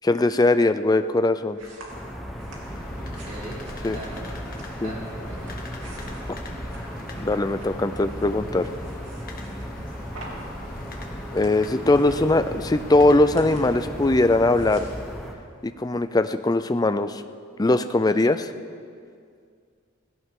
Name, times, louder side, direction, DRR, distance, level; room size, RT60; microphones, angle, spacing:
voice 1, 0.0-1.6 3.8-4.0 4.8-4.9 7.2-8.7 11.3-14.9 15.6-17.1 17.6-18.5, left 2 dB, 20° left, 10 dB, 0.5 m, -20 dB
sound 1, 0.8-16.1, right 1 dB, 80° right, 2.9 m, -47 dB
sound 2, 1.9-15.3, equal, ahead, 1.3 m, -37 dB
sound 3, 2.4-15.4, left 1 dB, 50° left, 1.7 m, -42 dB
voice 2, 3.0-3.6 3.9-4.2 4.8-5.4 9.8-10.1, right 1 dB, 40° right, -6 dB, 4.1 m, -40 dB
17.5 x 16.5 x 3.8 m, 2.2 s
head